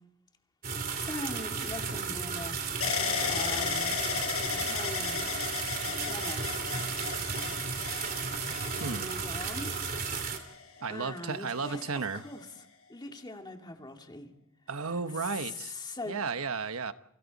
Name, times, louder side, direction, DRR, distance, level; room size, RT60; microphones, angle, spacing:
sound 1, 0.6-10.4, right 5 dB, 45° right, 3.2 m, -34 dB
voice 1, 0.9-2.6 3.2-4.0 4.5-5.3 6.0-6.4 8.7-9.7 10.9-12.5 12.9-14.3 15.2-16.2, left 2 dB, 20° left, 2.3 m, -41 dB
sound 2, 2.8-10.8 11.5-12.2, left 6 dB, 75° left, 5.5 m, -35 dB
voice 2, 8.8-9.1 10.8-12.2 14.7-15.7 16.1-16.9, right 4 dB, 80° right, 1.1 m, -34 dB
29.5 x 24.5 x 4.2 m
head